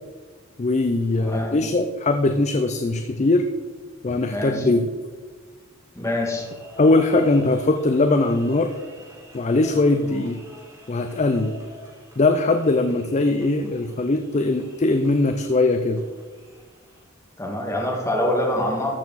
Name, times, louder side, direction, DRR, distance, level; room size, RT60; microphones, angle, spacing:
voice 1, 0.6-3.5 4.0-4.9 6.8-8.7 9.3-10.4 10.9-11.6 12.2-16.0, left 2 dB, 35° left, 7 dB, 0.5 m, -20 dB
voice 2, 1.2-1.5 4.3-4.7 5.9-6.5 17.4-18.9, left 1 dB, 15° left, -1 dB, 2.0 m, -25 dB
sound 1, 5.9-17.0, equal, 15° right, 2.6 m, -47 dB
13.5 x 6.7 x 4.1 m, 1.5 s
head